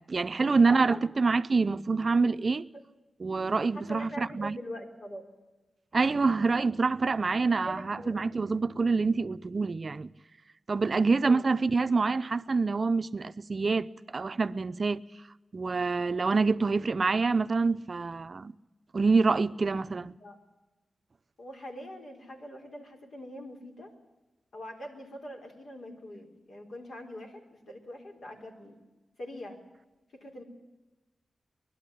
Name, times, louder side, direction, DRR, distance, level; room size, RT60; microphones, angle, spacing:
voice 1, 0.0-2.6 3.2-4.6 5.9-10.1 10.7-15.0 15.5-18.5 18.9-20.1, right 4 dB, 50° right, 0.6 m, -26 dB
voice 2, 0.6-1.0 2.7-2.8 3.7-5.2 7.4-8.2 11.2-11.5 20.2-20.4 21.4-23.9 24.5-28.7 29.2-29.6 30.1-30.4, equal, 70° left, 4.2 m, -43 dB
21.5 x 12.0 x 10.0 m
cardioid pair, 65°, 0 cm